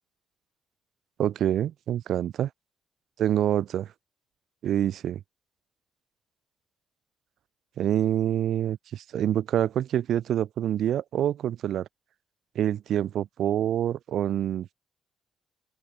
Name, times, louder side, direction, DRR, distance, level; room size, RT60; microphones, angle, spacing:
voice 1, 1.2-2.5 3.2-3.9 4.6-5.2 7.8-11.9 12.6-14.7, right 10 dB, 70° right, 0.4 m, -26 dB
open air
cardioid pair, 75°, 0 cm